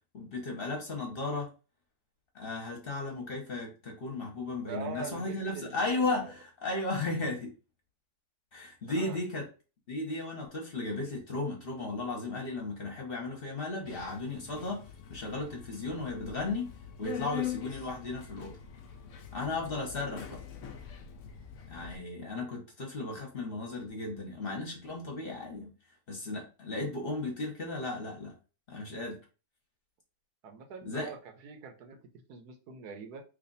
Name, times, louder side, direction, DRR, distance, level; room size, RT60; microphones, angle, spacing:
voice 1, 0.1-1.5 2.3-7.5 8.5-9.5 9.9-14.8 15.1-16.7 17.0-18.6 19.3-20.4 21.7-25.7 26.1-28.3 28.7-29.2 30.8-31.1, left 2 dB, 40° left, -1 dB, 1.0 m, -35 dB
voice 2, 4.7-6.3 8.9-9.2 30.4-31.2 31.4-33.2, right 4 dB, 80° right, 5 dB, 1.3 m, -43 dB
Subway metro underground, 13.9-22.0, left 9 dB, 65° left, 0.8 m, -43 dB
3.2 x 2.4 x 3.9 m, 0.33 s
omnidirectional pair, 1.6 m